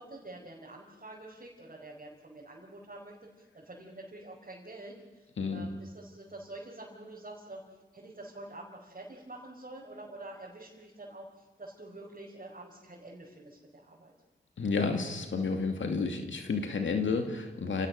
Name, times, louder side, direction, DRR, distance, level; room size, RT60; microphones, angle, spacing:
voice 1, 0.0-3.2 3.5-7.6 7.9-14.1, right 2 dB, 45° right, -4 dB, 5.2 m, -47 dB
voice 2, 5.4-5.7 14.6-17.9, left 4 dB, 90° left, 5 dB, 2.4 m, -31 dB
29.0 x 18.0 x 6.5 m, 1.2 s
cardioid pair, 45°, 19 cm